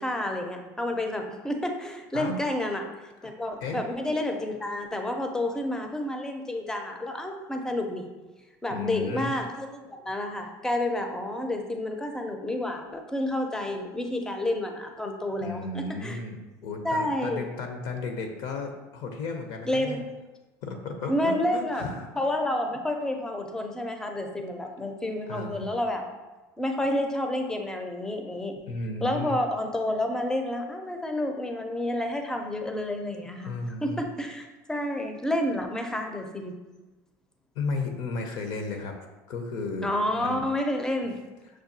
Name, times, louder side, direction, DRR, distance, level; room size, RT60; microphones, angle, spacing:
voice 1, 0.0-2.9 3.2-8.1 8.6-16.2 16.8-17.4 19.6-20.0 21.1-21.8 22.2-26.0 26.6-28.6 29.0-33.5 33.8-36.5 39.8-41.2, left 1 dB, 10° left, 4 dB, 0.5 m, -30 dB
voice 2, 8.7-9.3 15.4-16.4 16.6-20.0 20.6-22.1 25.3-25.7 28.7-29.4 33.4-34.0 37.5-38.9 39.3-40.4, left 3 dB, 65° left, 4 dB, 0.6 m, -34 dB
6.1 x 2.3 x 2.6 m, 1.1 s
supercardioid pair, 110°, 8 cm